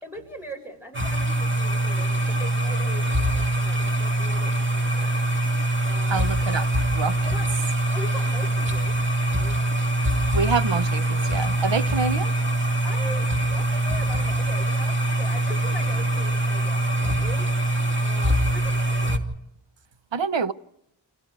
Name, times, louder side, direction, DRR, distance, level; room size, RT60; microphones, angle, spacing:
voice 1, 0.0-5.2 5.8-6.8 7.3-7.5 7.9-9.6 12.8-17.5 18.0-19.2, equal, 5° right, 7.0 m, -41 dB
sound 1, 0.9-19.2, right 1 dB, 25° right, 2.5 m, -23 dB
voice 2, 6.1-6.7 7.0-7.3 10.3-12.3 20.1-20.5, right 5 dB, 70° right, 1.0 m, -26 dB
30.0 x 27.5 x 4.8 m
wide cardioid pair, 80°, 47 cm